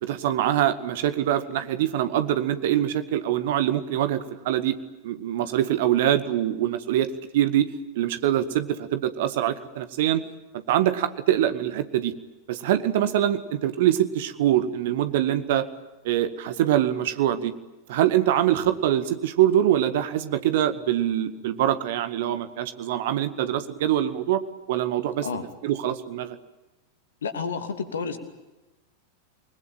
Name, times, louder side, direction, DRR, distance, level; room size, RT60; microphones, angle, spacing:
voice 1, 0.0-4.8 5.0-7.1 7.3-7.7 8.0-10.2 10.5-12.1 12.5-15.7 16.0-17.5 17.9-24.4 24.7-25.3 25.6-26.4, right 11 dB, 55° right, 11 dB, 1.9 m, -24 dB
voice 2, 27.2-28.2, left 5 dB, 65° left, 8 dB, 2.8 m, -30 dB
28.5 x 21.0 x 8.9 m, 1.1 s
figure-of-eight pair, 90°, 0 cm